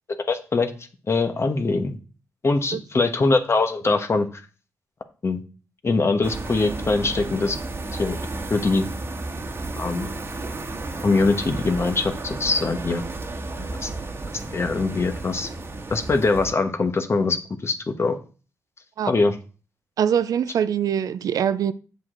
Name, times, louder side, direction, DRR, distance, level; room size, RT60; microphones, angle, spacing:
voice 1, 0.3-0.7 1.1-2.0 2.4-4.3 5.2-5.4 5.8-7.6 7.9-8.2 8.5-8.9 9.7-10.1 11.0-13.0 13.8-13.9 14.5-15.5 15.9-18.2 19.1-19.4, left 3 dB, 45° left, 1.2 m, -22 dB
sound 1, 6.2-16.5, right 2 dB, 40° right, 1.3 m, -33 dB
voice 2, 20.0-21.7, right 8 dB, 70° right, 0.4 m, -23 dB
7.4 x 6.3 x 3.8 m
cardioid pair, 55°, 6 cm